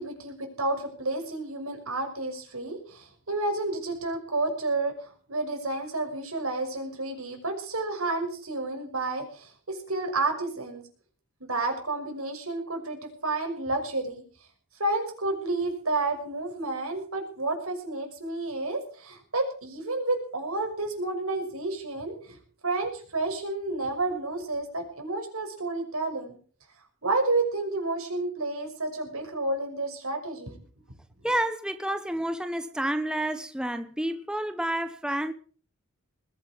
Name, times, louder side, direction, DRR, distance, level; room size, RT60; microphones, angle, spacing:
voice 1, 0.0-10.9 11.4-14.2 14.8-22.4 22.6-26.4 27.0-30.6, right 2 dB, 85° right, 5.9 m, -30 dB
voice 2, 31.2-35.3, right 1 dB, 5° right, 0.9 m, -29 dB
20.5 x 8.7 x 7.5 m
head